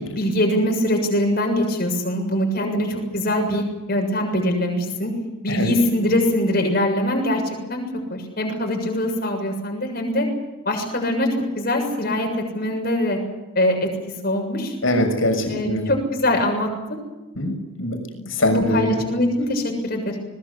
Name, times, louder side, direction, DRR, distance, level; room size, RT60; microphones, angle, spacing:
voice 1, 0.0-5.1 5.4-7.8 8.1-10.3 10.7-11.3 11.6-12.3 12.5-13.2 13.6-13.9 14.2-14.7 15.5-17.0 18.5-20.2, left 1 dB, 50° left, 2 dB, 7.0 m, -23 dB
voice 2, 14.8-15.9 17.4-19.0, left 1 dB, 80° left, 5 dB, 6.4 m, -23 dB
22.0 x 21.0 x 8.4 m, 1.1 s
head